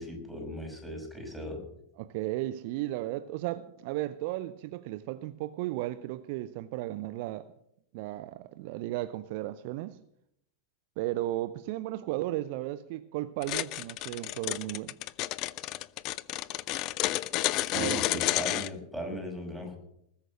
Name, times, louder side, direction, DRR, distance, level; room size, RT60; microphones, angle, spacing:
voice 1, 0.0-1.6 17.6-19.8, equal, ahead, 5.9 m, -38 dB
voice 2, 2.0-7.5 7.9-10.0 11.0-14.9 17.7-18.2, right 16 dB, 45° right, 0.6 m, -35 dB
sound 1, 13.4-18.7, left 17 dB, 40° left, 0.6 m, -31 dB
20.0 x 9.0 x 6.4 m
figure-of-eight pair, 90°, 0 cm